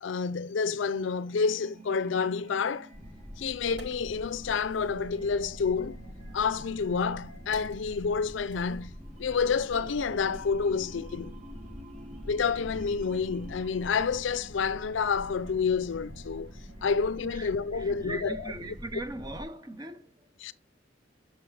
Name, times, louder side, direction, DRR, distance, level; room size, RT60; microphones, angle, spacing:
voice 1, 0.0-2.9 3.4-6.0 6.3-11.4 12.3-16.5 16.8-18.4 20.4-20.5, left 5 dB, 75° left, 0.4 m, -29 dB
sound 1, 0.9-18.8, right 1 dB, 35° right, 1.1 m, -51 dB
sound 2, 2.9-19.5, equal, 5° left, 1.8 m, -45 dB
Wood, 2.9-3.0 3.5-5.1 6.1-9.4 9.7-9.9, right 2 dB, 60° right, 1.4 m, -55 dB
voice 2, 17.3-20.3, right 1 dB, 20° right, 0.6 m, -40 dB
6.3 x 6.2 x 3.2 m
head